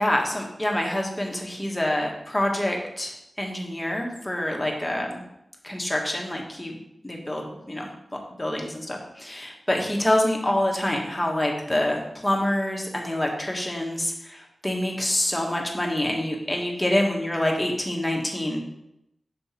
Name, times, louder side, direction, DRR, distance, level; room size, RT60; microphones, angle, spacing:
voice 1, 0.0-5.2 5.6-6.8 7.0-7.8 8.4-18.6, left 1 dB, 15° left, 0 dB, 1.3 m, -26 dB
6.9 x 3.4 x 4.3 m, 0.83 s
cardioid pair, 55°, 0 cm